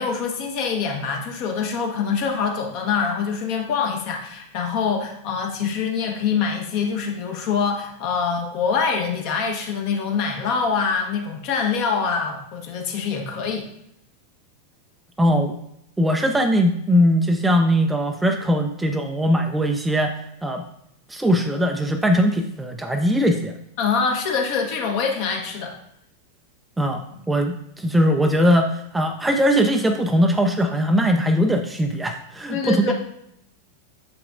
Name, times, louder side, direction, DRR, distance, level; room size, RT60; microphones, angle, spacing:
voice 1, 0.0-13.7 23.8-25.7 32.5-32.9, left 5 dB, 45° left, 2 dB, 1.1 m, -24 dB
voice 2, 15.2-15.5 16.0-20.6 21.1-23.5 26.8-32.9, equal, 5° right, 5 dB, 0.4 m, -20 dB
6.8 x 5.6 x 2.5 m, 0.75 s
figure-of-eight pair, 90°, 0 cm